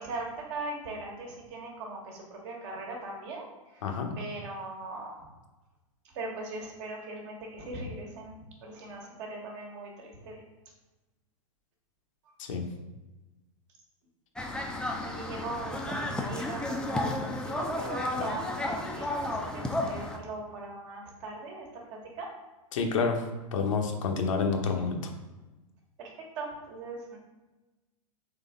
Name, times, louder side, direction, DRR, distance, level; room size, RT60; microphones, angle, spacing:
voice 1, 0.0-3.5 3.7-3.8 4.2-5.2 6.1-10.4 15.0-22.3 26.0-27.2, right 2 dB, 55° right, 0 dB, 1.3 m, -40 dB
voice 2, 3.8-4.1 12.4-12.6 22.7-23.2 23.5-25.1, left 5 dB, 65° left, 3 dB, 0.8 m, -28 dB
sound 1, 14.4-20.2, left 1 dB, 5° left, 0.5 m, -33 dB
4.0 x 3.4 x 3.6 m, 1.1 s
hypercardioid pair, 100°, 18 cm